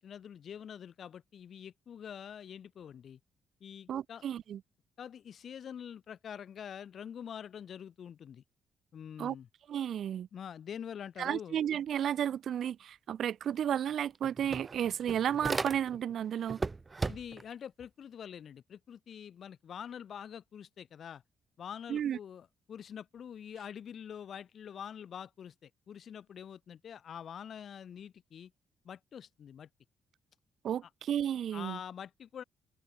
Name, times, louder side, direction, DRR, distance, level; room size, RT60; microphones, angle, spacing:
voice 1, 0.0-3.2 3.6-4.2 5.0-8.4 8.9-9.5 10.3-11.6 17.1-21.2 21.6-28.5 28.8-29.7 31.5-32.4, left 8 dB, 60° left, 4.6 m, -45 dB
voice 2, 3.9-4.6 9.2-9.3 9.7-10.3 11.2-16.6 21.9-22.2 30.6-31.8, right 9 dB, 65° right, 0.8 m, -33 dB
sound 1, 13.5-13.6 13.9-16.1 16.5-17.5, right 3 dB, 25° right, 1.1 m, -36 dB
open air
cardioid pair, 90°, 0 cm